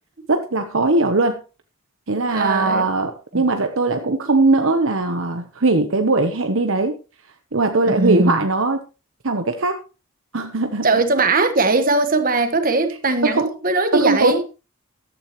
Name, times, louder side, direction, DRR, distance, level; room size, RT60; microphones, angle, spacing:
voice 1, 0.3-1.4 2.1-7.0 7.5-8.8 9.2-9.8 10.3-10.9 13.2-13.5 13.9-14.4, right 3 dB, 60° right, 1.0 m, -20 dB
voice 2, 2.1-2.9 3.3-3.4 7.8-8.4 10.8-14.4, right 3 dB, 40° right, 1.5 m, -20 dB
14.0 x 12.5 x 3.1 m
head